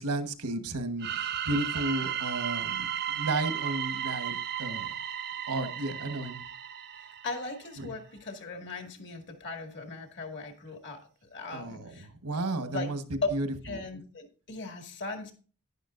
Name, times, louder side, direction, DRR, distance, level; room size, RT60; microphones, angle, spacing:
voice 1, 0.0-4.9 5.5-6.4 7.8-7.9 11.5-13.0 13.3-13.8, right 2 dB, 85° right, 1.2 m, -33 dB
sound 1, 1.0-7.7, right 9 dB, 50° right, 0.6 m, -34 dB
voice 2, 7.2-12.1 12.6-12.9 13.2-13.3 13.6-15.3, left 3 dB, 55° left, 2.1 m, -38 dB
11.0 x 10.5 x 2.5 m
head